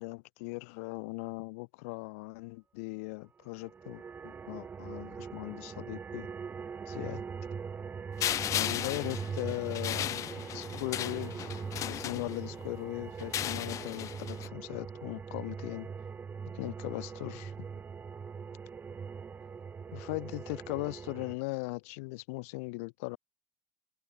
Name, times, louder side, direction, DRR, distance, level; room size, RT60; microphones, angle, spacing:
voice 1, 0.0-6.3 6.9-7.2 8.5-10.2 10.5-15.9 16.5-17.5 19.9-23.2, left 27 dB, 85° left, 2.9 m, -39 dB
sound 1, 3.5-21.3, right 6 dB, 25° right, 7.7 m, -41 dB
sound 2, 8.2-12.7 13.2-14.5, left 12 dB, 45° left, 5.2 m, -36 dB
cardioid pair, 135°, 8 cm